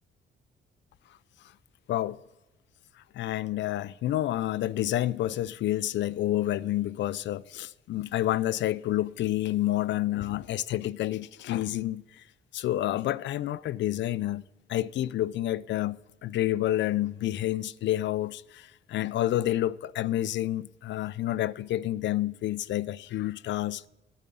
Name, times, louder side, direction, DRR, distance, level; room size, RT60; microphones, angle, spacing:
voice 1, 1.9-2.2 3.1-12.2 12.5-14.4 14.7-23.8, left 14 dB, 65° left, 0.4 m, -29 dB
10.0 x 8.0 x 8.6 m
cardioid pair, 90°, 20 cm